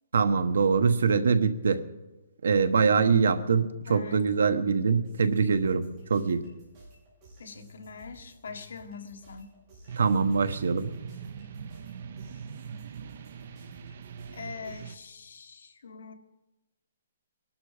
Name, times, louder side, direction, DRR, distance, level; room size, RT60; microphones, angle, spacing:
voice 1, 0.1-1.8 2.4-6.4 10.0-10.9, right 5 dB, 80° right, 10 dB, 1.2 m, -24 dB
voice 2, 3.8-4.3 7.4-9.6 14.3-16.1, left 5 dB, 70° left, 5 dB, 1.5 m, -43 dB
sound 1, 5.0-15.0, right 1 dB, 20° right, 6.0 m, -53 dB
sound 2, 9.9-15.0, right 7 dB, 40° right, 0.7 m, -42 dB
21.0 x 12.0 x 5.0 m, 1.1 s
hypercardioid pair, 180°, 0 cm